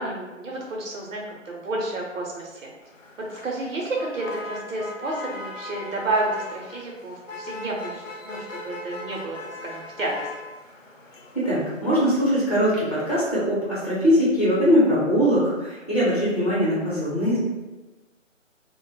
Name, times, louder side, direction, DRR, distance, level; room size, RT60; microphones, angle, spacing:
voice 1, 0.0-2.6 3.2-10.3, right 2 dB, 80° right, -2 dB, 0.7 m, -30 dB
Motor vehicle (road), 2.8-13.3, left 2 dB, 80° left, 0.6 m, -40 dB
voice 2, 11.3-17.4, equal, 30° left, -8 dB, 0.7 m, -21 dB
2.1 x 2.1 x 2.9 m, 1.1 s
figure-of-eight pair, 175°, 38 cm